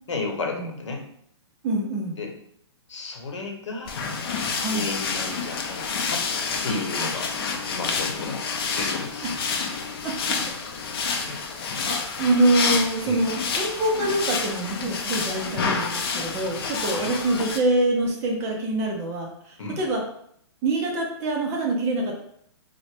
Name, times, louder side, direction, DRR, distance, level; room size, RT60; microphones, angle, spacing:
voice 1, 0.1-1.1 2.2-2.3 2.9-3.9 4.6-6.3 6.6-7.3 7.7-9.2 11.2-11.4 13.0-13.3 16.9-17.1 19.6-19.8, left 3 dB, 85° left, 2 dB, 0.8 m, -33 dB
voice 2, 1.6-2.2 4.6-4.9 10.0-10.4 11.0-11.4 11.9-20.0 20.6-22.1, right 2 dB, 15° right, 0 dB, 0.4 m, -25 dB
sound 1, 3.9-17.6, left 5 dB, 55° left, 0.5 m, -29 dB
3.6 x 2.1 x 3.3 m, 0.68 s
hypercardioid pair, 160°, 15 cm